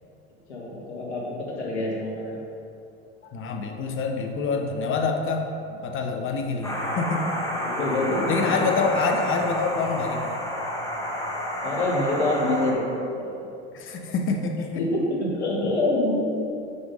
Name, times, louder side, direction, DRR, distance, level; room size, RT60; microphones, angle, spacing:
voice 1, 0.5-2.4 6.6-6.8 7.6-8.8 11.6-13.4 14.7-16.2, left 2 dB, 85° left, -3 dB, 1.3 m, -26 dB
voice 2, 3.2-5.5 5.8-7.3 8.3-10.4 13.7-14.8, left 4 dB, 35° left, 3 dB, 0.8 m, -26 dB
sound 1, 6.6-12.7, equal, 10° left, 1.1 m, -30 dB
6.1 x 3.5 x 5.0 m, 2.7 s
hypercardioid pair, 70°, 34 cm